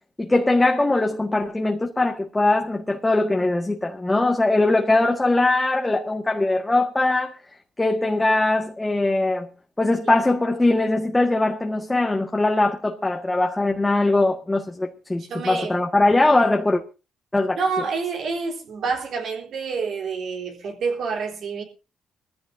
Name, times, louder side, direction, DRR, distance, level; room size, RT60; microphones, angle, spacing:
voice 1, 0.2-7.3 7.8-9.5 9.8-16.8 17.3-17.8, left 2 dB, 15° left, 1.7 m, -21 dB
voice 2, 15.2-15.8 17.5-21.6, right 5 dB, 65° right, 3.8 m, -28 dB
22.0 x 15.0 x 2.8 m
cardioid pair, 90°, 0 cm